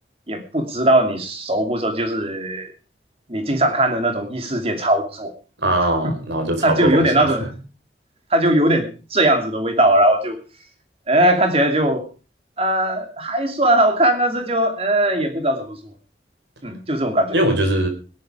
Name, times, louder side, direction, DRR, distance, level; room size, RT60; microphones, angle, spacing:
voice 1, 0.3-2.7 3.3-5.3 6.6-7.5 8.3-10.4 11.1-12.1 12.6-15.9 16.6-17.4, right 1 dB, 35° right, 6 dB, 2.9 m, -19 dB
voice 2, 5.6-7.4 17.3-17.9, right 1 dB, 85° right, 6 dB, 4.8 m, -21 dB
17.5 x 11.0 x 5.0 m, 0.35 s
head